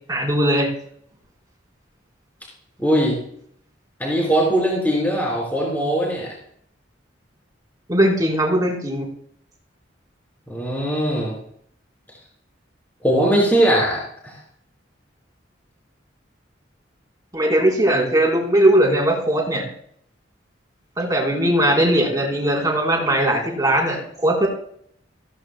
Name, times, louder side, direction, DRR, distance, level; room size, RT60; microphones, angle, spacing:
voice 1, 0.1-0.7 7.9-9.1 17.3-19.7 21.0-24.5, right 1 dB, 20° right, 0 dB, 3.7 m, -19 dB
voice 2, 2.8-3.2 4.0-6.3 10.5-11.3 13.0-14.3, right 1 dB, 10° left, -4 dB, 4.5 m, -20 dB
15.5 x 15.5 x 2.2 m, 0.64 s
head